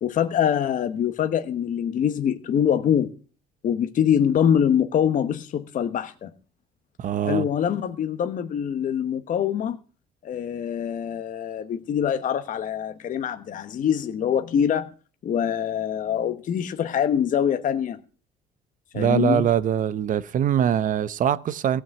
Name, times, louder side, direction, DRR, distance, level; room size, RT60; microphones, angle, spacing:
voice 1, 0.0-3.1 3.6-6.3 7.2-9.8 10.2-14.9 15.2-18.0 18.9-19.5, left 9 dB, 50° left, 1.1 m, -24 dB
voice 2, 7.0-7.5 18.9-21.8, right 9 dB, 50° right, 0.8 m, -23 dB
15.5 x 6.2 x 8.1 m
cardioid pair, 110°, 17 cm